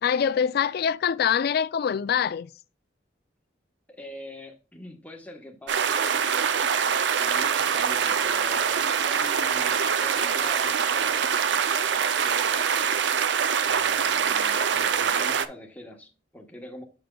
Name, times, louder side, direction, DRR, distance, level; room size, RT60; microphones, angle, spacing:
voice 1, 0.0-2.5, left 7 dB, 60° left, 0.3 m, -24 dB
voice 2, 3.9-13.0 13.6-16.8, left 1 dB, 10° left, 1.1 m, -44 dB
sound 1, 5.7-15.5, right 7 dB, 70° right, 0.4 m, -24 dB
7.8 x 6.0 x 2.3 m
head